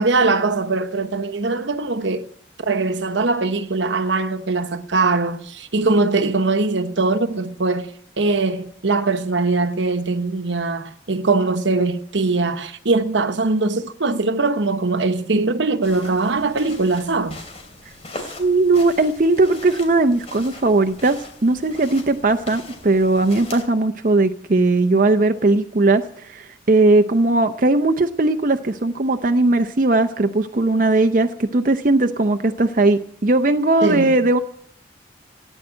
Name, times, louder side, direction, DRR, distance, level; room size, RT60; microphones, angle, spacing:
voice 1, 0.0-2.3 2.7-7.9 8.2-17.4 33.8-34.2, right 3 dB, 75° right, 1.0 m, -21 dB
sound 1, 15.8-23.6, left 2 dB, 35° left, 3.0 m, -40 dB
voice 2, 18.4-34.4, right 2 dB, 45° right, 0.7 m, -18 dB
16.0 x 9.0 x 8.8 m
head